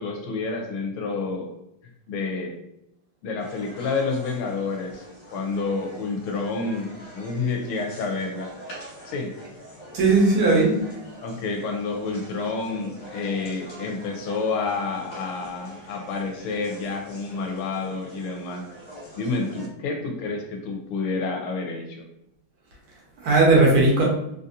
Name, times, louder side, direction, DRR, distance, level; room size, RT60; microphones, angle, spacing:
voice 1, 0.0-1.5 2.1-2.5 3.2-5.0 5.3-6.9 7.1-8.5 9.1-9.3 11.2-18.6 19.2-22.1, left 4 dB, 80° left, 2 dB, 1.5 m, -29 dB
sound 1, 3.4-19.7, equal, 50° left, 0.9 m, -44 dB
voice 2, 9.9-10.9 22.7-24.0, right 3 dB, 80° right, -3 dB, 1.9 m, -18 dB
4.0 x 2.6 x 2.5 m, 0.82 s
omnidirectional pair, 2.4 m